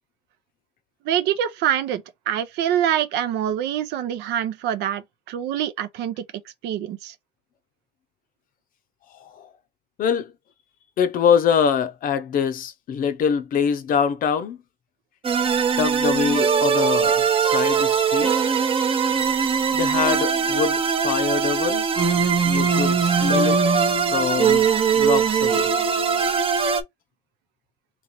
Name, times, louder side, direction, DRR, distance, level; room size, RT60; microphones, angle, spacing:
voice 1, 1.0-6.2 6.6-7.1, right 10 dB, 85° right, 0.6 m, -25 dB
voice 2, 10.0-10.3 11.0-14.6 15.8-18.3 19.7-21.9 22.4-23.6 24.1-24.7 24.9-25.7, left 7 dB, 55° left, 0.6 m, -24 dB
sound 1, 15.2-26.8, right 6 dB, 35° right, 0.6 m, -21 dB
4.0 x 3.0 x 2.9 m
cardioid pair, 110°, 17 cm